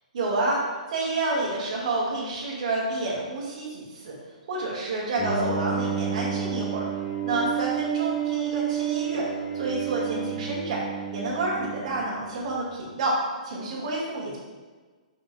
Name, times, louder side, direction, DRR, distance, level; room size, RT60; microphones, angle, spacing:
voice 1, 0.1-0.6 0.9-4.1 4.5-6.8 7.2-9.3 9.5-10.8 11.1-13.2 13.4-14.4, right 2 dB, 65° right, -6 dB, 1.9 m, -29 dB
Bowed string instrument, 5.2-12.4, right 8 dB, 15° left, 1.1 m, -30 dB
7.6 x 5.7 x 2.3 m, 1.4 s
hypercardioid pair, 140°, 4 cm